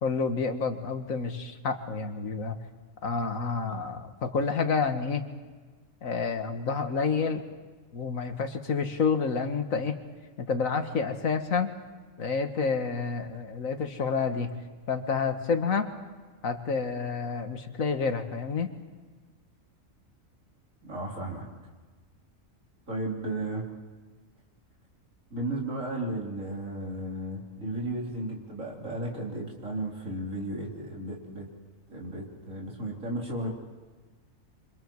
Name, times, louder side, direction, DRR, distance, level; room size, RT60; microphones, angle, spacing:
voice 1, 0.0-2.6 3.0-5.2 6.0-7.4 7.9-10.0 10.4-11.7 12.2-14.5 14.9-15.9 16.4-18.7, left 5 dB, 90° left, 6 dB, 2.1 m, -29 dB
voice 2, 20.8-21.5 22.9-23.6 25.3-31.5 31.9-33.5, right 1 dB, 75° right, -2 dB, 4.4 m, -34 dB
29.0 x 25.5 x 4.8 m, 1.4 s
omnidirectional pair, 1.4 m